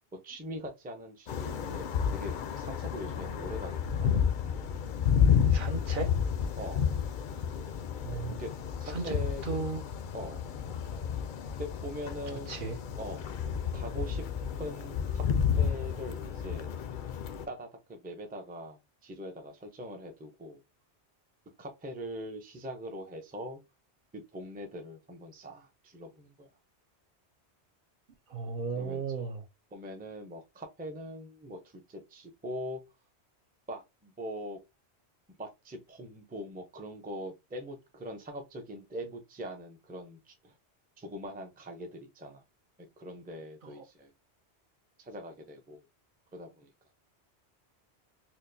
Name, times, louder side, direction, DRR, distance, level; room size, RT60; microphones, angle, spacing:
voice 1, 0.2-4.3 6.6-6.8 8.4-8.5 8.8-9.7 10.1-10.4 11.6-12.6 13.0-13.3 13.7-14.2 14.6-15.2 15.6-16.8 17.5-20.6 21.6-23.6 24.1-26.5 28.7-29.4 29.7-32.8 33.7-34.6 35.4-40.5 41.0-42.4 42.8-44.1 45.0-45.8 46.3-46.7, equal, 10° right, 0.4 m, -42 dB
sound 1, 1.3-17.5, left 7 dB, 60° left, 0.6 m, -31 dB
voice 2, 5.5-6.1 8.0-8.4 8.9-9.1 9.4-9.9 12.5-12.8 28.3-29.4 43.6-43.8, right 4 dB, 55° right, 0.7 m, -35 dB
4.4 x 2.1 x 2.6 m
omnidirectional pair, 1.1 m